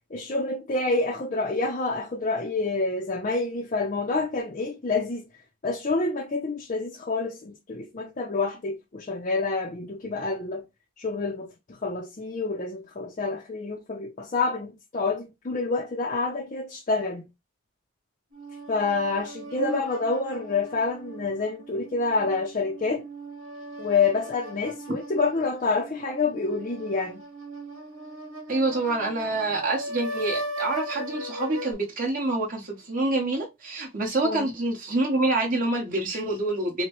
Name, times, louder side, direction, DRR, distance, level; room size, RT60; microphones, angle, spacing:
voice 1, 0.1-5.2 5.6-10.6 11.0-17.3 18.7-23.0 23.8-27.2 34.2-34.5, left 3 dB, 35° left, 0.5 m, -28 dB
sound 1, 18.3-31.7, right 1 dB, 75° right, 1.3 m, -38 dB
voice 2, 28.5-36.8, right 2 dB, 40° right, 1.3 m, -27 dB
5.6 x 2.1 x 3.1 m
head